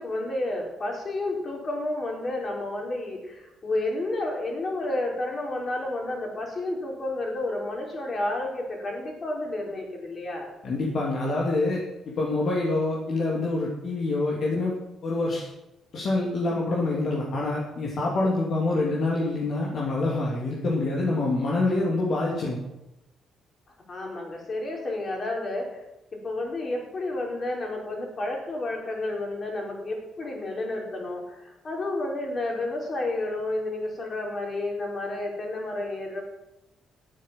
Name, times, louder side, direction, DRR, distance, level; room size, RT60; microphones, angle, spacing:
voice 1, 0.0-10.5 23.9-25.8 26.2-36.2, left 2 dB, 40° left, 0 dB, 4.8 m, -31 dB
voice 2, 10.6-11.8 12.1-14.7 15.0-15.5 15.9-22.6, left 2 dB, 60° left, -3 dB, 2.9 m, -26 dB
12.0 x 9.1 x 7.7 m, 0.92 s
cardioid pair, 90°, 0 cm